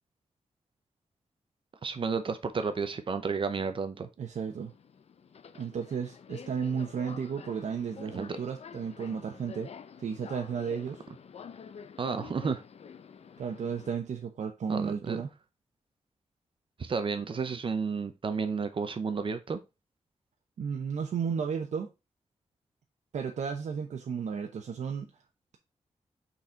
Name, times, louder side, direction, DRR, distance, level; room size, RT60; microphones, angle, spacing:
voice 1, 1.8-4.1 8.1-8.3 12.0-12.6 14.7-15.2 16.8-19.6, right 5 dB, 45° right, 0.7 m, -32 dB
voice 2, 4.2-4.7 5.5-9.7 10.0-11.0 13.4-15.3 20.6-21.9 23.1-25.1, right 6 dB, 85° right, 0.9 m, -33 dB
Subway metro underground, 4.3-13.9, left 6 dB, 60° left, 0.6 m, -48 dB
6.3 x 4.2 x 4.4 m
wide cardioid pair, 150°, 12 cm